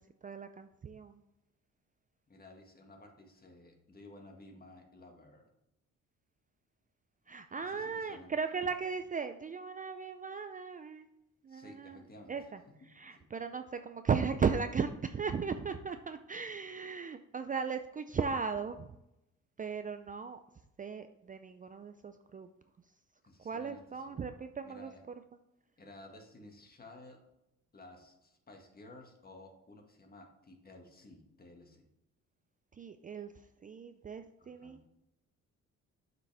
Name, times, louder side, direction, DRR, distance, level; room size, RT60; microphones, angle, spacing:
voice 1, 0.2-1.2 7.3-11.1 11.4-12.0 12.3-12.6 12.9-18.9 19.6-20.4 20.8-22.5 23.4-24.9 32.8-33.3 33.6-34.8, right 5 dB, 25° right, 9 dB, 0.4 m, -36 dB
voice 2, 2.3-5.5 7.6-8.3 11.5-12.5 13.1-13.3 23.2-24.3 24.6-25.0 25.8-27.2 27.7-31.8 34.4-34.8, left 2 dB, 30° left, 2 dB, 1.8 m, -54 dB
7.7 x 6.0 x 3.4 m, 0.87 s
cardioid pair, 90°, 30 cm